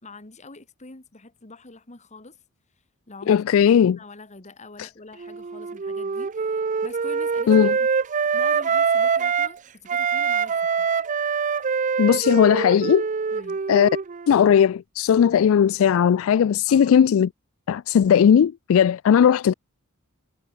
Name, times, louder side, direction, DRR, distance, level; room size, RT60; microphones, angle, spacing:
voice 1, 0.0-2.4 3.1-3.4 3.7-6.5 6.8-7.9 8.3-10.9 13.3-13.6 16.7-17.0, left 3 dB, 35° left, 2.0 m, -44 dB
voice 2, 3.3-4.0 4.8-4.9 7.5-7.7 12.0-13.1 13.7-13.9 14.3-17.3 17.7-19.5, left 8 dB, 70° left, 0.3 m, -17 dB
Wind instrument woodwind instrument, 5.2-9.6 9.9-14.4, right 6 dB, 35° right, 0.5 m, -24 dB
head